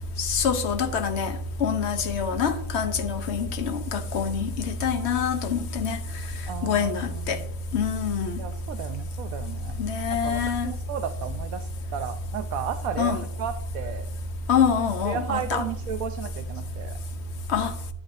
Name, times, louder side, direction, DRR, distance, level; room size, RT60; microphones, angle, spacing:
voice 1, 0.2-6.0 6.6-7.4 7.7-8.4 9.8-10.7 13.0-13.2 14.5-15.7 17.5-17.7, left 6 dB, 55° left, 1.1 m, -25 dB
voice 2, 6.5-7.4 8.4-9.8 10.1-14.1 15.0-17.0, right 9 dB, 85° right, 1.1 m, -34 dB
11.5 x 10.5 x 2.6 m
omnidirectional pair, 1.4 m